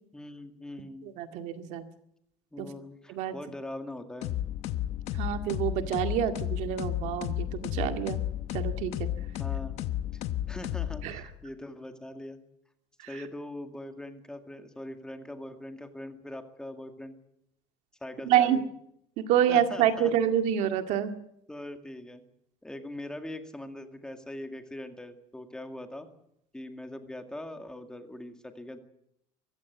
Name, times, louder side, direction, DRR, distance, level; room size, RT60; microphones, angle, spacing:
voice 1, 0.1-1.1 2.5-4.3 9.4-9.8 10.1-12.4 13.1-17.2 18.0-18.6 19.5-20.1 21.5-22.2 22.6-26.1 26.5-28.8, left 1 dB, 5° left, 6 dB, 2.0 m, -41 dB
voice 2, 1.0-1.8 2.6-2.7 3.1-3.4 5.2-8.2 8.5-9.1 11.0-11.2 18.3-18.6 19.2-21.1, right 10 dB, 65° right, 7 dB, 2.1 m, -27 dB
sound 1, 4.2-11.4, left 12 dB, 60° left, 1.1 m, -33 dB
23.5 x 15.5 x 9.4 m, 0.76 s
cardioid pair, 150°, 13 cm